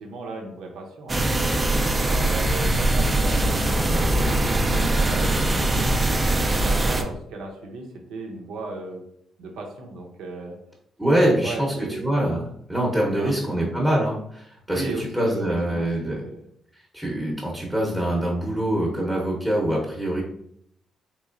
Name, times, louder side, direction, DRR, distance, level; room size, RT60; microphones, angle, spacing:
voice 1, 0.0-4.2 4.7-5.9 6.4-9.0 9.4-10.6 11.1-12.1 13.2-13.7 14.7-16.4, right 2 dB, 85° right, 1 dB, 0.7 m, -36 dB
sound 1, 1.1-7.0, right 1 dB, 25° right, 0.4 m, -22 dB
voice 2, 11.0-11.7 12.0-16.2 16.9-20.2, right 1 dB, 5° right, -3 dB, 0.8 m, -24 dB
3.6 x 3.0 x 2.5 m, 0.72 s
cardioid pair, 90°, 0 cm